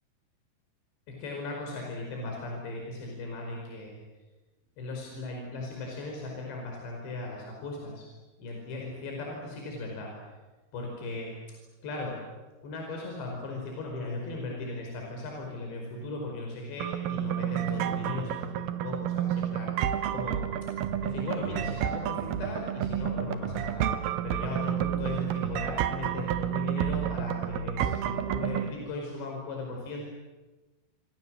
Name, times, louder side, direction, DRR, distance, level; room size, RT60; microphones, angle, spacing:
voice 1, 1.1-4.0 4.8-8.1 8.4-10.1 10.7-11.3 11.8-12.1 12.6-19.7 20.1-20.4 21.0-23.8 24.2-30.1, left 2 dB, 75° left, 0 dB, 7.2 m, -37 dB
sound 1, 16.8-28.7, right 10 dB, 70° right, 2.9 m, -30 dB
28.5 x 26.0 x 7.7 m, 1.2 s
omnidirectional pair, 5.1 m